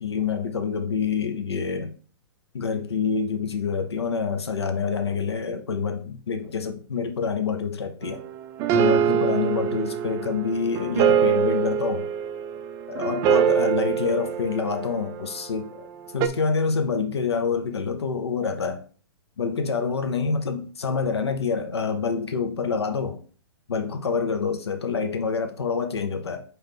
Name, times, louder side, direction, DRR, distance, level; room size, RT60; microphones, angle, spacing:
voice 1, 0.0-1.9 2.5-8.2 8.7-12.1 12.9-15.9 16.1-18.8 19.4-23.2 23.7-26.4, left 5 dB, 80° left, 0.7 m, -27 dB
sound 1, 8.0-15.5 16.2-16.3, right 8 dB, 25° right, 0.3 m, -24 dB
4.9 x 3.1 x 3.2 m
hypercardioid pair, 115°, 14 cm